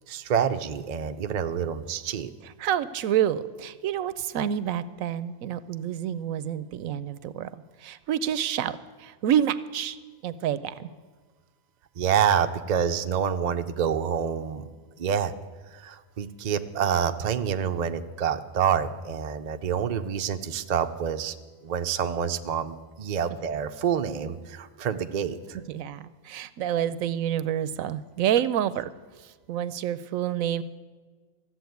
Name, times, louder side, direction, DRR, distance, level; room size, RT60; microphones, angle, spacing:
voice 1, 0.1-2.3 12.0-14.6 15.0-15.3 15.7-21.3 21.6-25.6, right 8 dB, 55° right, 8 dB, 0.4 m, -27 dB
voice 2, 2.6-7.5 7.8-10.0 10.2-10.9 25.7-28.9 29.5-30.6, right 10 dB, 75° right, 15 dB, 1.0 m, -28 dB
14.0 x 7.7 x 9.3 m, 1.4 s
omnidirectional pair, 1.5 m